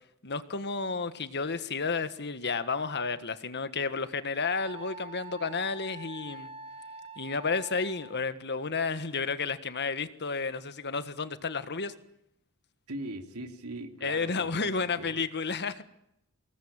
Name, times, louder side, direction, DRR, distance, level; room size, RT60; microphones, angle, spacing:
voice 1, 0.2-6.5 7.2-11.9 14.0-15.8, left 4 dB, 50° left, 12 dB, 1.6 m, -31 dB
Wind instrument woodwind instrument, 4.4-8.2, right 3 dB, 25° right, 1.2 m, -45 dB
voice 2, 12.9-15.2, right 2 dB, 75° right, 6 dB, 3.3 m, -40 dB
25.5 x 20.0 x 9.0 m, 0.79 s
head